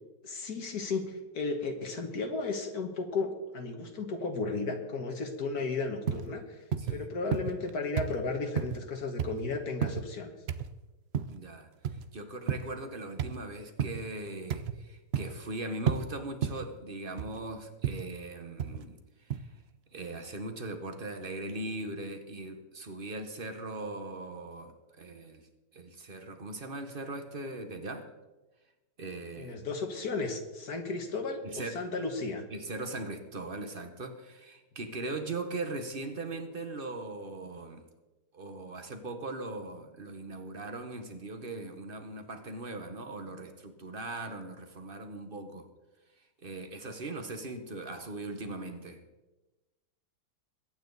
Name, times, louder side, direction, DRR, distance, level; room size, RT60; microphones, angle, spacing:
voice 1, 0.2-6.6 6.9-10.3 29.4-31.4 31.7-32.4, left 3 dB, 60° left, 4 dB, 1.9 m, -34 dB
sound 1, 6.1-6.3 6.7-7.0 7.3-7.7 8.0-8.2 8.6-8.8 9.2-9.4 9.8-10.1 10.5-10.7 11.1-11.4 11.8-12.1 12.5-12.7 13.2-13.4 13.8-14.0 14.5-14.8 15.1-15.4 15.9-16.1 16.4-16.7 17.2-17.4 17.8-18.1 18.6-18.9 19.3-19.4, right 8 dB, 65° right, 0.6 m, -32 dB
voice 2, 6.8-7.1 11.3-19.5 19.9-25.5 25.7-28.1 29.0-29.6 31.4-31.8 32.5-37.8 38.3-45.7 46.4-49.0, right 2 dB, 35° right, 7 dB, 1.4 m, -40 dB
23.0 x 9.2 x 4.0 m, 1.1 s
omnidirectional pair, 1.9 m